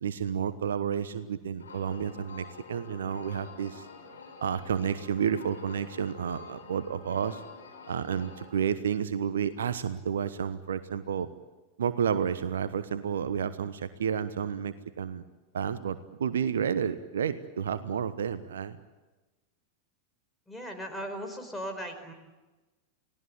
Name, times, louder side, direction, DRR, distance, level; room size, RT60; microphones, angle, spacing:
voice 1, 0.0-3.8 4.4-7.4 7.9-11.3 11.8-15.2 15.5-18.8, right 7 dB, 65° right, 13 dB, 1.1 m, -31 dB
sound 1, 1.6-8.5, left 4 dB, 65° left, 5.6 m, -48 dB
voice 2, 20.5-22.1, equal, 5° left, 5 dB, 4.6 m, -37 dB
29.5 x 18.5 x 8.8 m, 1.2 s
figure-of-eight pair, 90°, 0 cm